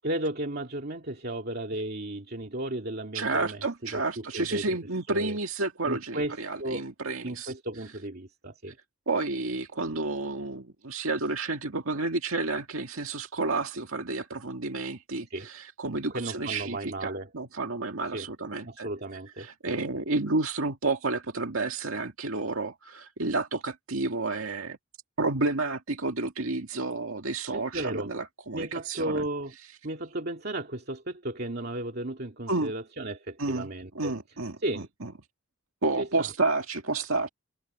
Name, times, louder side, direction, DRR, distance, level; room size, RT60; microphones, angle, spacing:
voice 1, 0.0-4.6 5.1-5.4 5.9-6.3 6.6-6.9 7.2-8.8 15.3-15.5 16.1-17.3 18.1-18.3 18.7-19.5 27.5-28.1 28.5-29.5 29.8-34.2 34.6-34.9 36.0-36.1, right 1 dB, 50° right, 2.5 m, -34 dB
voice 2, 3.1-7.5 9.1-18.9 19.4-24.8 25.2-29.2 32.5-32.7 33.4-33.7 33.9-35.1 35.8-37.3, right 3 dB, 80° right, 2.0 m, -30 dB
head